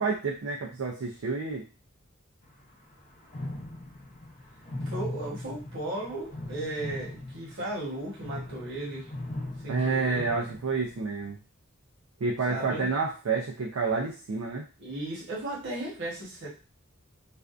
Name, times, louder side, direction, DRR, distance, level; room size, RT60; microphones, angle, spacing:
voice 1, 0.0-1.6 9.7-11.4 12.2-14.7, right 4 dB, 75° right, -2 dB, 0.5 m, -29 dB
sound 1, 2.4-2.6 2.9-11.1, left 1 dB, 40° left, 0.6 m, -40 dB
voice 2, 4.8-9.1 9.6-10.2 12.5-12.9 14.8-16.5, right 1 dB, 60° right, -4 dB, 1.1 m, -35 dB
2.5 x 2.2 x 2.4 m, 0.33 s
head